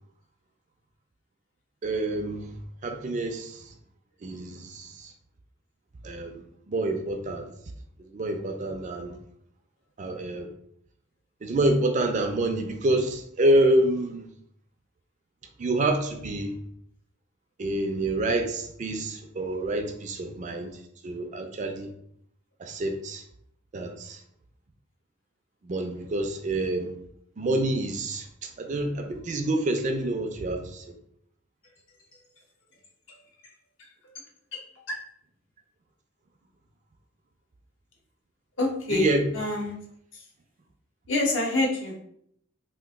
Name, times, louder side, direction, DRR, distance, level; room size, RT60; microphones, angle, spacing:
voice 1, 1.8-2.6 2.8-3.7 4.2-5.1 6.0-7.5 8.0-9.2 10.0-10.5 11.4-14.3 15.6-16.6 17.6-21.9 22.6-23.2 23.7-24.2 25.6-26.9 27.4-31.0 38.9-39.2, right 1 dB, 40° right, 0.4 m, -27 dB
voice 2, 33.8-34.1 34.5-35.0 38.6-39.7 40.1-40.2 41.1-42.0, left 2 dB, 70° left, 0.9 m, -28 dB
2.9 x 2.5 x 3.5 m
head